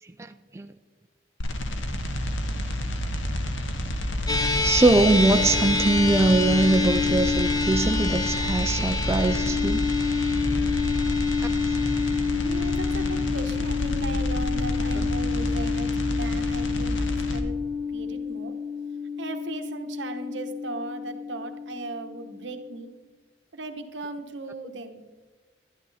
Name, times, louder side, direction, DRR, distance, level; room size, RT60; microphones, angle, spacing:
voice 1, 0.2-0.7 4.6-9.9, right 2 dB, 15° right, 0.3 m, -22 dB
sound 1, 1.4-17.4, equal, 80° left, 1.2 m, -29 dB
sound 2, 4.3-22.8, left 4 dB, 20° left, 1.0 m, -28 dB
voice 2, 12.3-17.6 17.9-18.6 19.2-22.9 23.5-25.0, right 2 dB, 70° right, 1.1 m, -37 dB
12.0 x 11.5 x 4.1 m
head